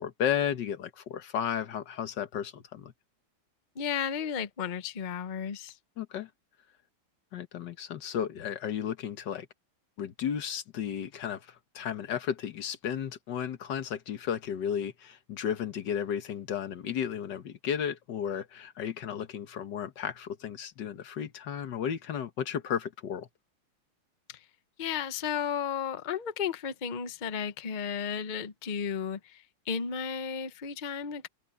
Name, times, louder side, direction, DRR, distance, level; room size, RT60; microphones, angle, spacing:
voice 1, 0.0-2.9 6.0-6.3 7.3-9.5 10.0-23.3, left 8 dB, 60° left, 1.7 m, -33 dB
voice 2, 3.8-5.7 24.3-24.4 24.8-31.3, left 7 dB, 85° left, 0.4 m, -33 dB
omnidirectional pair, 2.4 m